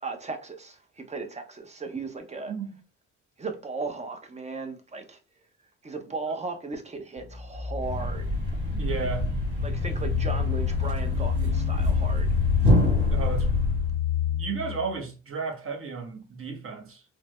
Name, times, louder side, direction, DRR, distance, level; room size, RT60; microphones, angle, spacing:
voice 1, 0.0-2.5 3.4-5.2 5.8-8.3 9.0-9.1 9.6-12.3, right 3 dB, 20° right, 0.7 m, -36 dB
voice 2, 2.4-2.8 8.7-9.4 13.1-13.5 14.4-17.0, right 5 dB, 45° right, 1.0 m, -33 dB
sound 1, 7.2-15.0, left 11 dB, 60° left, 0.6 m, -29 dB
Thump thud, 7.8-14.0, left 1 dB, 75° right, 1.7 m, -26 dB
3.3 x 2.1 x 3.1 m
cardioid pair, 90°, 30 cm